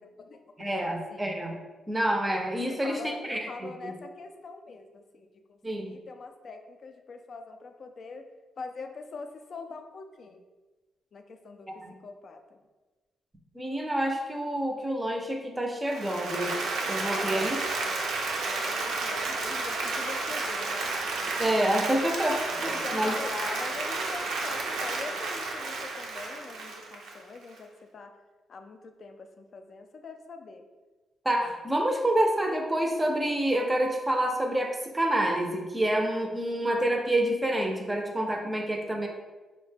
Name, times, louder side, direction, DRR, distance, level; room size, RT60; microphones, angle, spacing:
voice 1, 0.0-1.2 2.7-8.3 8.6-10.5 11.1-12.6 17.1-18.1 18.5-20.9 22.7-28.1 28.5-30.7, left 4 dB, 50° left, 6 dB, 0.3 m, -43 dB
voice 2, 0.6-1.5 1.9-3.9 5.6-5.9 11.8-11.9 13.5-16.6 16.9-17.6 21.4-23.2 31.2-39.1, right 1 dB, 15° right, 2 dB, 0.5 m, -28 dB
Applause, 15.9-27.6, right 3 dB, 85° right, 0.5 m, -32 dB
3.8 x 2.1 x 3.3 m, 1.2 s
cardioid pair, 100°, 0 cm